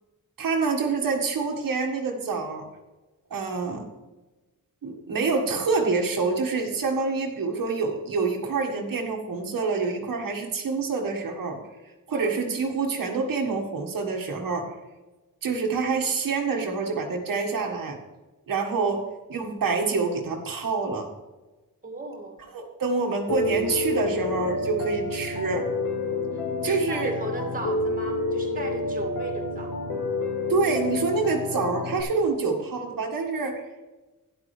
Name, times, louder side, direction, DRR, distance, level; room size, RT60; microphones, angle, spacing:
voice 1, 0.4-2.7 3.3-3.9 4.8-11.6 12.1-14.7 15.4-18.0 18.5-21.1 22.5-25.7 26.6-27.2 30.5-33.6, right 4 dB, 75° right, 1 dB, 1.7 m, -27 dB
voice 2, 21.8-22.4 26.6-29.7 32.4-32.5, right 2 dB, 25° right, 2 dB, 2.1 m, -36 dB
Piano, 23.3-32.0, left 2 dB, 90° left, 1.7 m, -29 dB
12.0 x 10.5 x 3.3 m, 1.1 s
wide cardioid pair, 145°, 34 cm